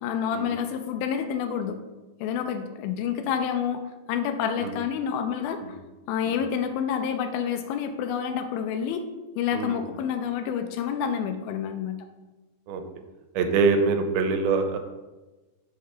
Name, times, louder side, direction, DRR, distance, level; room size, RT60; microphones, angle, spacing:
voice 1, 0.0-1.8 2.2-3.8 4.1-5.6 6.1-9.0 9.4-12.0, left 8 dB, 80° left, 7 dB, 2.3 m, -28 dB
voice 2, 13.4-14.8, right 4 dB, 90° right, 6 dB, 2.5 m, -24 dB
6.6 x 3.3 x 5.6 m, 1.1 s
omnidirectional pair, 4.4 m